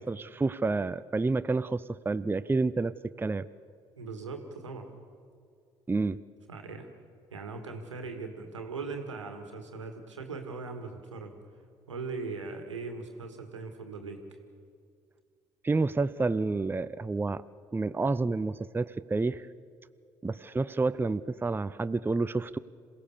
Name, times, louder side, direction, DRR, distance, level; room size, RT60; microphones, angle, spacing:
voice 1, 0.0-3.5 5.9-6.2 15.6-17.4 17.7-19.4 20.2-22.6, right 3 dB, 15° right, 14 dB, 0.6 m, -29 dB
voice 2, 4.0-4.9 6.5-6.9 7.3-11.3 11.9-14.2, right 4 dB, 85° right, 6 dB, 1.8 m, -39 dB
27.5 x 17.0 x 6.9 m, 2.3 s
figure-of-eight pair, 50°, 15 cm